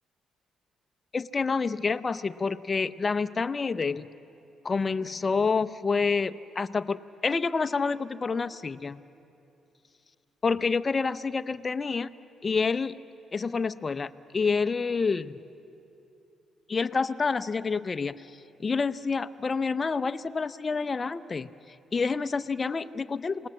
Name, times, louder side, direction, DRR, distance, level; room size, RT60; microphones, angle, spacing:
voice 1, 1.1-4.1 4.6-9.0 10.4-12.1 12.4-13.0 13.3-15.4 16.7-18.3 18.6-21.5 21.9-23.5, left 4 dB, 30° left, 11 dB, 0.6 m, -28 dB
28.0 x 19.0 x 7.4 m, 2.7 s
cardioid pair, 90°, 0 cm